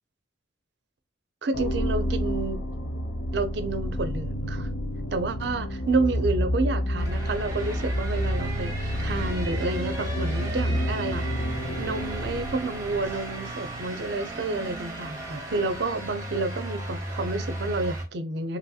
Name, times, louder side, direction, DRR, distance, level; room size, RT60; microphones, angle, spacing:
voice 1, 1.4-2.6 3.3-4.7 5.1-11.5 11.8-18.6, right 3 dB, 60° right, 0.5 m, -30 dB
sound 1, 1.5-13.4, equal, 75° left, 0.5 m, -29 dB
sound 2, 7.0-18.1, right 1 dB, 15° right, 0.7 m, -35 dB
2.9 x 2.7 x 2.2 m
head